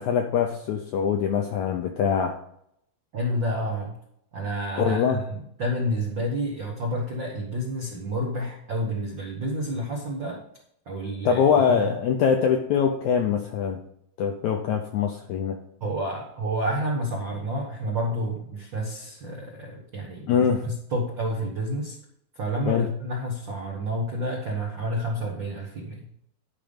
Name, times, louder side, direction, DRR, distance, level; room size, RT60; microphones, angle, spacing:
voice 1, 0.0-2.4 4.8-5.2 11.2-13.8 14.2-15.6 20.3-20.6 22.7-22.9, left 7 dB, 80° left, 3 dB, 1.7 m, -23 dB
voice 2, 3.1-4.0 4.3-10.4 10.8-12.0 15.8-22.0 22.3-26.1, right 1 dB, 80° right, -1 dB, 1.0 m, -29 dB
11.5 x 5.2 x 5.1 m, 0.73 s
omnidirectional pair, 4.3 m